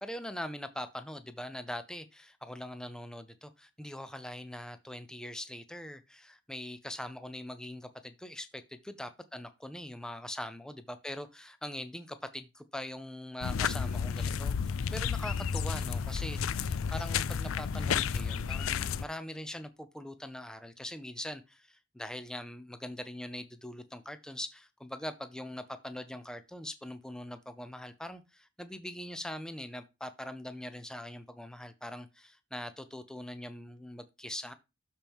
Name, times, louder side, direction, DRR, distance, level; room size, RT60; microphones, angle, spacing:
voice 1, 0.0-34.5, left 1 dB, 5° left, 0.5 m, -42 dB
sound 1, 13.4-19.0, left 6 dB, 70° left, 0.4 m, -32 dB
12.5 x 4.5 x 3.5 m
head